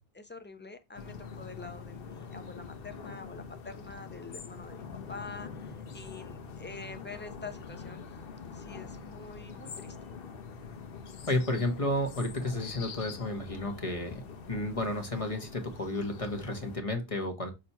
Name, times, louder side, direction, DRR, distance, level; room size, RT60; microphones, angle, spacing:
voice 1, 0.2-8.0 8.5-9.9, left 4 dB, 10° left, 0.7 m, -46 dB
sound 1, 0.9-16.8, left 5 dB, 60° left, 1.0 m, -44 dB
voice 2, 11.3-17.5, left 1 dB, 30° left, 1.3 m, -32 dB
6.5 x 2.9 x 5.4 m
omnidirectional pair, 1.1 m